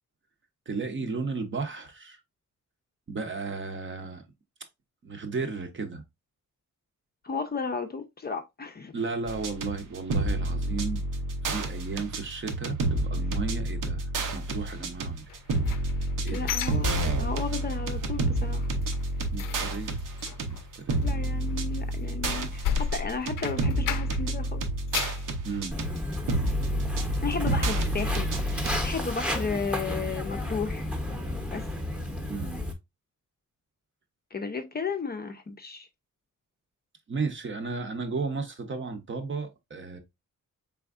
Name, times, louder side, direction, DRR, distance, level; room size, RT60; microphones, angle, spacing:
voice 1, 0.7-2.2 3.1-4.2 5.0-6.0 8.9-11.0 11.4-15.2 16.2-16.5 19.3-20.0 20.4-21.1 25.4-25.8 31.0-31.4 32.3-32.6 37.1-40.0, right 4 dB, 40° right, 0.7 m, -34 dB
voice 2, 7.2-9.0 16.3-18.7 21.0-24.6 27.2-30.9 31.5-31.7 34.3-35.9, left 4 dB, 30° left, 0.5 m, -34 dB
sound 1, 9.3-28.8, right 2 dB, 75° right, 0.9 m, -29 dB
sound 2, 15.3-17.6 17.9-18.3 18.6-24.4 24.7-25.3 25.8-25.9 26.3-26.4, left 8 dB, 90° left, 0.5 m, -35 dB
Walk footsteps, 25.7-32.7, left 1 dB, 5° right, 0.8 m, -32 dB
4.3 x 3.5 x 2.4 m
wide cardioid pair, 155°, 32 cm